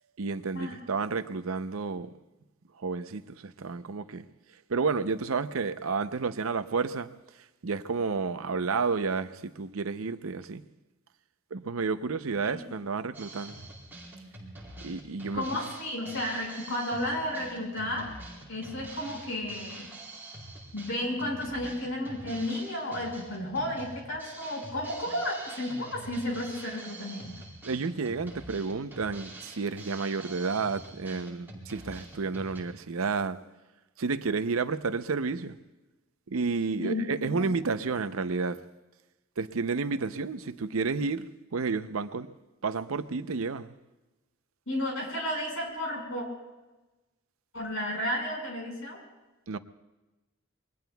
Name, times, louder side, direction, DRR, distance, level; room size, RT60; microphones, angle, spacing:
voice 1, 0.2-2.1 2.8-4.2 4.7-7.1 7.6-10.6 11.5-13.6 14.8-15.5 27.6-33.4 34.0-35.6 36.3-38.6 39.4-41.2 41.5-42.3 42.6-43.7 49.5-49.6, right 4 dB, 80° right, 0.6 m, -31 dB
Drum kit, 13.1-32.6, right 2 dB, 10° right, 4.0 m, -46 dB
voice 2, 15.3-18.1 18.5-19.9 20.7-27.3 36.8-37.0 37.3-37.4 44.7-46.2 47.5-49.0, left 1 dB, 70° left, 5.4 m, -32 dB
27.5 x 22.0 x 2.3 m
head